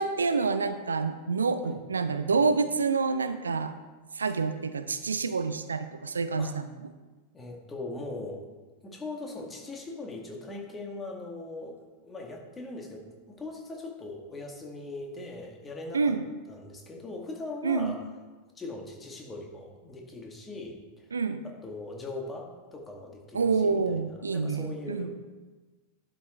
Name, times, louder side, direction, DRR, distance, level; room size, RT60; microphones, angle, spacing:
voice 1, 0.0-3.7 4.1-6.6 15.9-16.2 17.6-18.0 21.1-21.4 23.3-25.1, right 4 dB, 75° right, 10 dB, 0.5 m, -27 dB
voice 2, 7.3-8.5 8.8-16.0 16.5-18.0 18.6-21.1 21.4-25.1, left 2 dB, 15° left, 0 dB, 2.0 m, -40 dB
11.0 x 6.2 x 4.5 m, 1.3 s
figure-of-eight pair, 90°, 0 cm